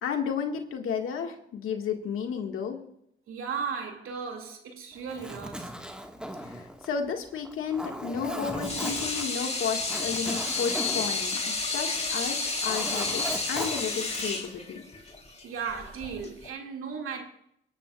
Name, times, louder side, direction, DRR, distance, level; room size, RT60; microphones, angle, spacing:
voice 1, 0.0-2.8 6.4-14.8, left 6 dB, 80° left, 1.9 m, -32 dB
voice 2, 3.3-5.7 10.3-10.4 15.1-15.2 15.4-17.3, right 6 dB, 80° right, 2.4 m, -36 dB
Zipper (clothing), 5.0-12.1 12.4-14.5, equal, 5° right, 1.7 m, -38 dB
Water tap faucet / Sink (filling or washing), 8.4-16.5, left 3 dB, 30° left, 3.4 m, -31 dB
23.5 x 10.5 x 2.5 m
cardioid pair, 60°, 21 cm